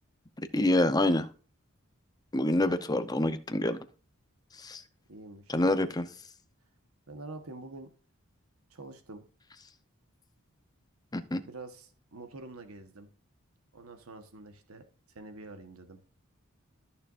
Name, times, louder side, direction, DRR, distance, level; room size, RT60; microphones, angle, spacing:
voice 1, 0.5-1.3 2.3-3.8 4.5-4.8 5.5-6.1 11.1-11.4, left 1 dB, 20° left, 10 dB, 0.7 m, -26 dB
voice 2, 5.1-5.6 7.1-7.9 8.7-9.3 11.4-13.1 13.7-14.8 15.1-16.0, right 2 dB, 85° right, 7 dB, 1.3 m, -46 dB
14.0 x 6.7 x 2.6 m, 0.37 s
head